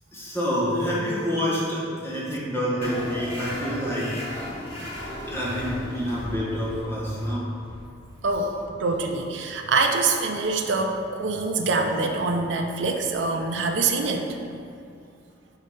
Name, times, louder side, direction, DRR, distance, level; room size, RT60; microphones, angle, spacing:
voice 1, 0.1-4.2 5.3-7.5, equal, 15° left, -7 dB, 1.3 m, -27 dB
sound 1, 2.8-9.9, left 1 dB, 30° left, 1.3 m, -37 dB
voice 2, 8.8-14.2, right 3 dB, 65° right, 3 dB, 0.5 m, -24 dB
4.9 x 4.1 x 5.5 m, 2.5 s
head